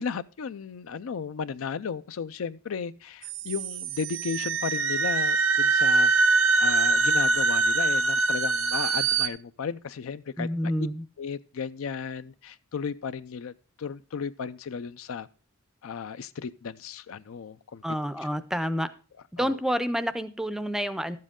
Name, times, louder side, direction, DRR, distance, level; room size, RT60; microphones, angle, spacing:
voice 1, 0.0-6.1 6.6-10.7 11.2-13.5 13.8-15.3 15.8-17.8 19.4-19.6, left 6 dB, 90° left, 0.5 m, -34 dB
sound 1, 3.2-9.3, right 3 dB, 75° right, 0.6 m, -23 dB
voice 2, 10.4-11.0 17.8-18.9 19.3-21.2, equal, ahead, 0.4 m, -28 dB
12.5 x 7.6 x 3.6 m
head